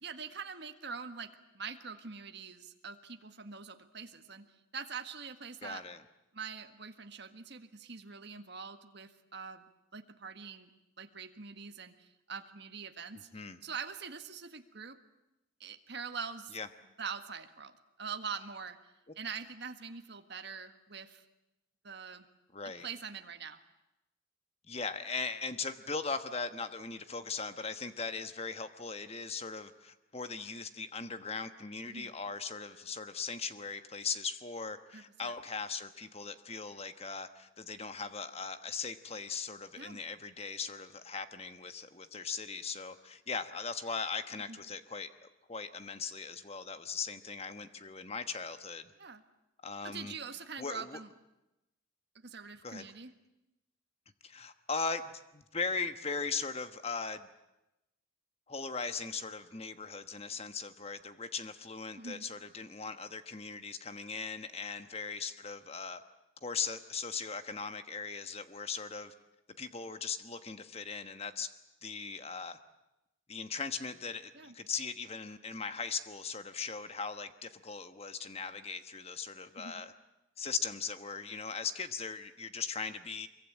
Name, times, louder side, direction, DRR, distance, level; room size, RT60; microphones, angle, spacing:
voice 1, 0.0-4.5 4.7-5.8 6.3-10.7 11.0-15.0 15.6-16.5 17.0-17.7 18.0-18.8 19.1-21.2 21.8-22.3 22.8-23.6 31.9-32.1 34.9-35.3 39.8-40.0 44.5-44.6 49.0-49.2 49.8-51.1 52.1-53.1 62.0-62.2 74.3-74.5 79.6-79.8, right 5 dB, 55° right, 7 dB, 1.6 m, -44 dB
voice 2, 5.6-6.0 13.3-13.6 16.5-16.7 22.5-22.9 24.7-48.9 49.6-50.1 50.6-51.0 52.6-52.9 54.2-57.3 58.5-66.0 66.4-69.1 69.6-71.5 71.8-72.6 73.3-79.9 80.4-83.3, left 5 dB, 30° left, 10 dB, 1.2 m, -39 dB
24.0 x 22.5 x 8.9 m, 0.94 s
head